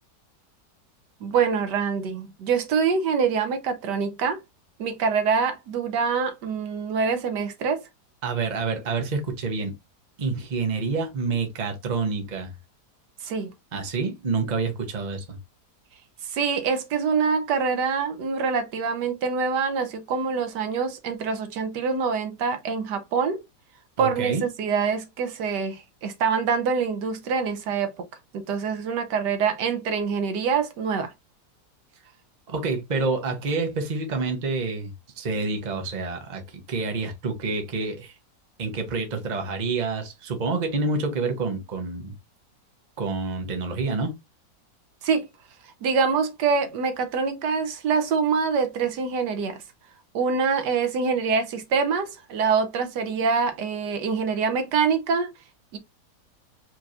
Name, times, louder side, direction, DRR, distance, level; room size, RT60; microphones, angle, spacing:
voice 1, 1.2-4.4 4.8-7.8 13.2-13.5 16.3-23.4 24.0-28.0 28.3-31.1 45.0-45.3 45.8-49.6 50.1-55.3 55.7-55.8, right 5 dB, 80° right, 1.4 m, -25 dB
voice 2, 8.2-9.7 10.2-12.5 13.7-15.4 24.0-24.4 32.5-38.1 38.6-42.1 43.0-44.1, right 4 dB, 30° right, 0.9 m, -28 dB
4.5 x 3.0 x 2.5 m
omnidirectional pair, 1.8 m